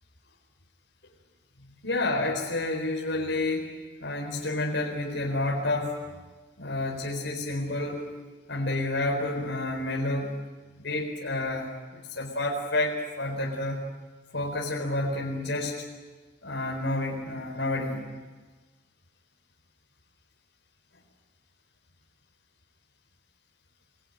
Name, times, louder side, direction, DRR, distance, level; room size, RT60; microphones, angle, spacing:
voice 1, 1.6-3.7 4.0-6.2 6.6-8.0 8.5-10.3 10.8-13.8 14.3-15.7 16.4-18.0, left 2 dB, 75° left, -1 dB, 4.3 m, -29 dB
28.0 x 20.5 x 9.1 m, 1.3 s
head